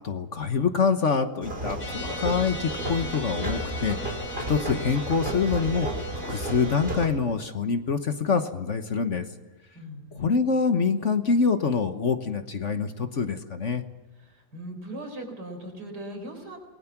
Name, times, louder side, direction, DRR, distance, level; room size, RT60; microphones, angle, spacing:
voice 1, 0.0-4.0 4.5-5.9 6.2-9.2 10.2-13.8, left 5 dB, 50° left, 8 dB, 1.4 m, -25 dB
sound 1, 1.4-7.1, right 1 dB, 35° right, 4.5 m, -33 dB
sound 2, 1.8-7.1, equal, 70° left, 3.8 m, -38 dB
voice 2, 9.7-10.3 14.2-16.6, right 1 dB, 85° right, 4 dB, 5.1 m, -39 dB
28.0 x 20.5 x 6.0 m, 1.1 s
omnidirectional pair, 1.7 m